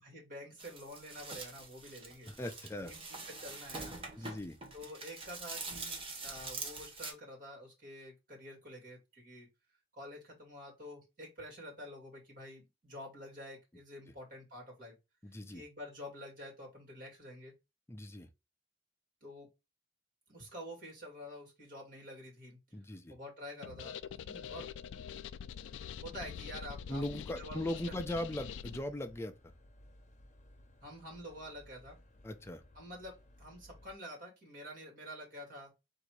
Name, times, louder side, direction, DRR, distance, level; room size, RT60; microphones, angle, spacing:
voice 1, 0.0-2.3 2.8-3.0 3.3-4.4 4.7-9.5 9.9-15.0 15.5-17.5 19.2-19.5 20.3-22.6 23.1-24.7 26.0-27.0 27.4-28.0 30.8-32.0 32.7-35.7, equal, 50° right, 2.5 m, -48 dB
sound 1, 0.6-7.1, right 3 dB, 30° right, 1.0 m, -44 dB
voice 2, 2.3-2.9 4.2-4.6 14.1-14.2 15.2-15.6 17.9-18.3 22.7-23.1 26.9-29.3 32.2-32.6, left 1 dB, 15° left, 0.5 m, -39 dB
sound 2, 23.6-28.8, left 8 dB, 80° left, 0.3 m, -45 dB
sound 3, 25.6-34.0, left 1 dB, 40° left, 0.8 m, -59 dB
3.9 x 2.7 x 4.6 m
head